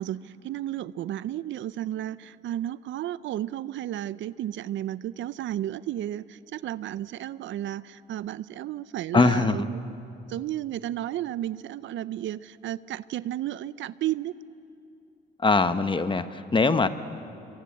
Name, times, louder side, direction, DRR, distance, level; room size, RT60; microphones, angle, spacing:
voice 1, 0.0-9.8 10.3-14.4 16.6-16.8, right 12 dB, 70° right, 18 dB, 0.6 m, -33 dB
voice 2, 9.1-9.7 15.4-16.9, left 3 dB, 25° left, 11 dB, 1.1 m, -22 dB
27.5 x 22.5 x 8.5 m, 2.7 s
cardioid pair, 90°, 20 cm